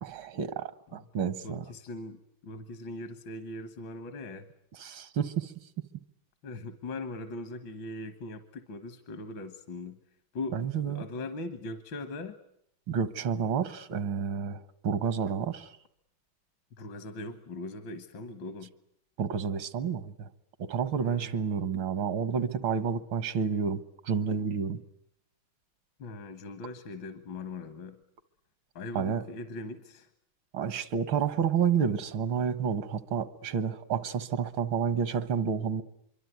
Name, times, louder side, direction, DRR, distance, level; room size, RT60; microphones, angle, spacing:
voice 1, 0.0-1.6 4.8-5.5 10.5-11.0 12.9-15.7 19.2-20.3 20.6-24.8 29.0-29.2 30.5-35.8, right 7 dB, 85° right, 15 dB, 2.1 m, -30 dB
voice 2, 1.4-4.5 6.4-10.0 10.3-10.6 10.9-12.4 16.7-18.7 21.0-21.4 26.0-28.0 28.8-30.1, left 2 dB, 75° left, 10 dB, 2.2 m, -40 dB
25.0 x 24.0 x 9.4 m, 0.73 s
omnidirectional pair, 2.1 m